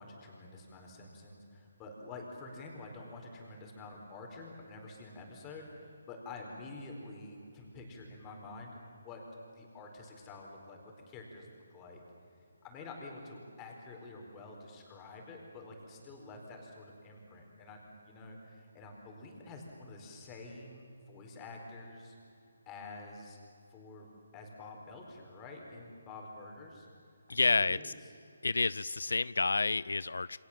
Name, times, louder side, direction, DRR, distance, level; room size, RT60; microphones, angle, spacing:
voice 1, 0.0-9.2 9.5-10.8 11.1-12.0 12.6-22.2 22.7-23.4 23.7-26.9 27.4-27.9, left 3 dB, 15° left, 1 dB, 4.3 m, -48 dB
voice 2, 27.3-27.9 28.4-30.4, left 3 dB, 90° left, 19 dB, 0.6 m, -29 dB
29.0 x 25.5 x 7.5 m, 2.6 s
hypercardioid pair, 170°, 0 cm